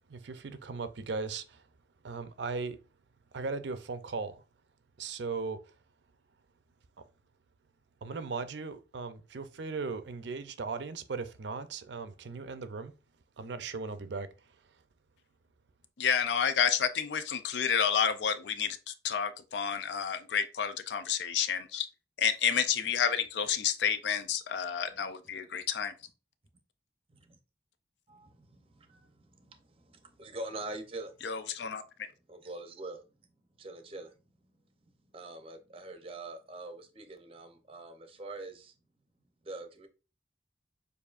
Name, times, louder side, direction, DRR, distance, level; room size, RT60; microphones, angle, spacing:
voice 1, 0.1-1.7 2.0-2.8 3.3-4.4 5.0-5.6 8.0-12.9 13.4-14.6, right 4 dB, 75° right, 0.5 m, -38 dB
voice 2, 16.0-21.9 22.2-25.9 31.2-31.8, left 7 dB, 75° left, 0.5 m, -30 dB
voice 3, 28.1-31.1 32.3-33.0 33.6-34.1 35.1-38.7 39.4-39.9, right 2 dB, 30° right, 0.6 m, -44 dB
6.8 x 2.6 x 2.4 m
head